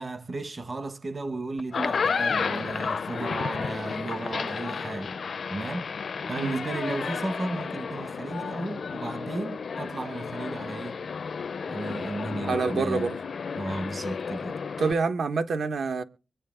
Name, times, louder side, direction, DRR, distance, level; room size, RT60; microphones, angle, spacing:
voice 1, 0.0-5.2 5.5-5.9 6.3-11.0 11.6-13.1 13.6-14.6, right 2 dB, 35° right, 1.0 m, -34 dB
sound 1, 1.6-14.9, left 5 dB, 60° left, 0.5 m, -32 dB
voice 2, 12.4-13.2 14.8-16.0, right 4 dB, 70° right, 1.2 m, -26 dB
23.5 x 8.9 x 3.7 m
cardioid pair, 80°, 0 cm